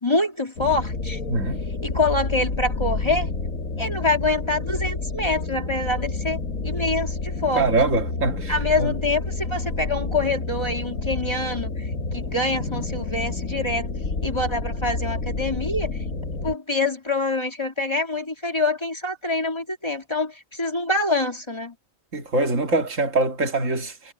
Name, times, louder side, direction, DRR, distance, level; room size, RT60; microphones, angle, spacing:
voice 1, 0.0-1.2 1.8-3.3 3.8-7.7 8.5-13.9 14.2-16.0 16.4-21.7, left 2 dB, 20° left, 2.5 m, -25 dB
sound 1, 0.6-16.5, left 3 dB, 80° left, 2.2 m, -29 dB
voice 2, 1.3-1.6 7.6-8.5 8.8-8.9 22.1-24.1, right 2 dB, 70° right, 2.2 m, -23 dB
omnidirectional pair, 1.4 m